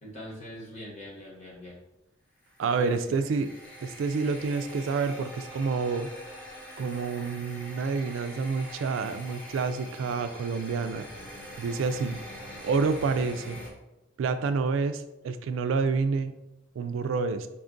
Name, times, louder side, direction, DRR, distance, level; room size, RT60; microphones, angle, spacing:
voice 1, 0.0-1.8 2.7-3.1, left 1 dB, 35° left, -4 dB, 1.3 m, -42 dB
sound 1, 2.4-13.7, equal, 10° left, 0.9 m, -44 dB
voice 2, 2.6-3.5 3.8-6.1 6.8-11.0 11.6-12.2 12.6-13.6 14.2-16.3 16.8-17.5, right 4 dB, 70° right, 9 dB, 0.3 m, -28 dB
4.2 x 2.3 x 3.8 m, 0.95 s
head